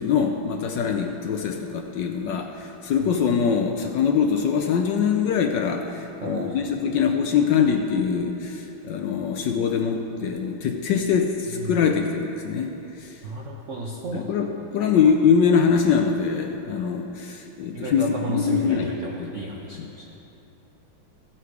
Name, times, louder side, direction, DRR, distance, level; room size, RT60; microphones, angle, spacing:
voice 1, 0.0-12.7 14.1-18.0 18.3-18.9 19.2-19.3 19.8-19.9, left 6 dB, 70° left, 4 dB, 1.1 m, -23 dB
voice 2, 6.2-6.9 11.5-11.9 13.2-14.3 17.7-20.2, right 1 dB, 65° right, -2 dB, 0.7 m, -33 dB
16.0 x 5.9 x 4.7 m, 2.9 s
omnidirectional pair, 2.3 m